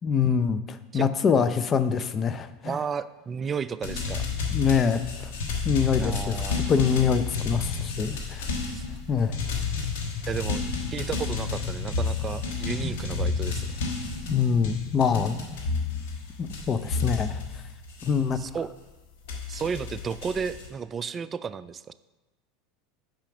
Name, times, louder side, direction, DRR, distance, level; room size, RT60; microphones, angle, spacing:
voice 1, 0.0-2.8 4.5-5.0 5.6-6.4 6.7-8.5 9.1-9.4 14.2-15.4 16.4-17.4 18.0-18.4, left 6 dB, 35° left, 13 dB, 0.5 m, -24 dB
voice 2, 2.6-4.3 6.0-6.7 8.7-8.8 10.3-10.6 10.9-13.7 18.4-18.7 19.5-21.9, right 6 dB, 30° right, 15 dB, 0.3 m, -33 dB
sound 1, 3.8-18.6 19.3-20.7, left 4 dB, 75° left, 1.2 m, -31 dB
5.8 x 5.0 x 5.8 m, 1.1 s
hypercardioid pair, 90°, 0 cm